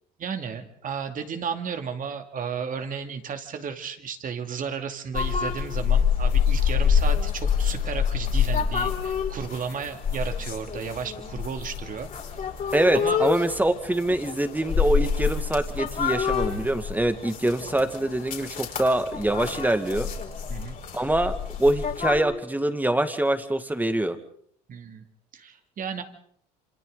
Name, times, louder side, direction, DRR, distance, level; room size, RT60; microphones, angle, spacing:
voice 1, 0.2-12.1 12.6-13.2 19.4-19.5 20.5-20.8 24.7-25.0 25.3-26.0, right 6 dB, 45° right, 6 dB, 2.6 m, -34 dB
sound 1, 5.1-22.2, left 7 dB, 45° left, 4.6 m, -27 dB
voice 2, 12.7-20.1 20.9-24.2, right 1 dB, 10° right, 9 dB, 2.0 m, -24 dB
28.0 x 26.5 x 4.0 m, 0.63 s
supercardioid pair, 80°, 19 cm